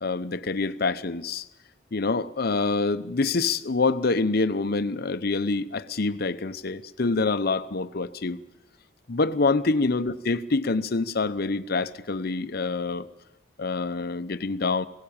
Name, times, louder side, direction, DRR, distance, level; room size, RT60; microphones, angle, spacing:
voice 1, 0.0-1.5 1.9-8.4 9.1-13.1 13.6-14.9, left 3 dB, 55° left, 0.8 m, -26 dB
17.5 x 17.0 x 8.7 m
head